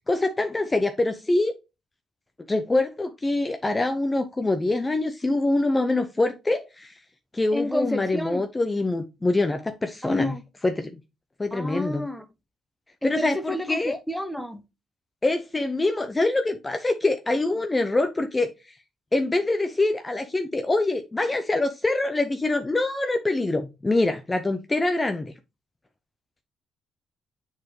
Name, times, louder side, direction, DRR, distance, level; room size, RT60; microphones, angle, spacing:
voice 1, 0.1-1.5 2.5-6.9 7.3-10.3 10.6-10.9 11.4-12.1 13.0-14.0 15.2-18.5 19.1-25.3, left 2 dB, 20° left, 0.7 m, -24 dB
voice 2, 7.5-8.5 10.0-10.4 11.5-12.3 13.0-14.6, left 1 dB, ahead, 1.0 m, -29 dB
7.2 x 4.3 x 3.2 m
cardioid pair, 90°, 0 cm